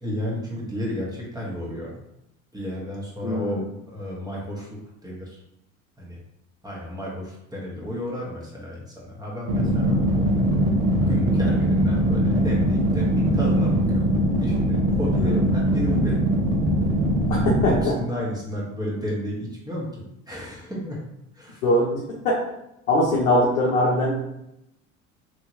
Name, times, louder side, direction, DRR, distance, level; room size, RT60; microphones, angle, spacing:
voice 1, 0.0-1.9 2.5-3.6 3.9-5.4 6.0-6.2 6.6-10.3 11.1-14.0 14.4-16.2 17.7-21.0 21.3-21.6, left 1 dB, 10° right, -5 dB, 1.1 m, -32 dB
voice 2, 3.2-3.7 15.2-15.4 17.3-17.7 21.6-22.0 22.2-22.4 22.9-24.3, left 1 dB, 75° left, -5 dB, 0.7 m, -21 dB
sound 1, 9.5-17.8, right 1 dB, 75° right, 0.7 m, -21 dB
3.0 x 2.7 x 2.6 m, 0.83 s
hypercardioid pair, 65°, 40 cm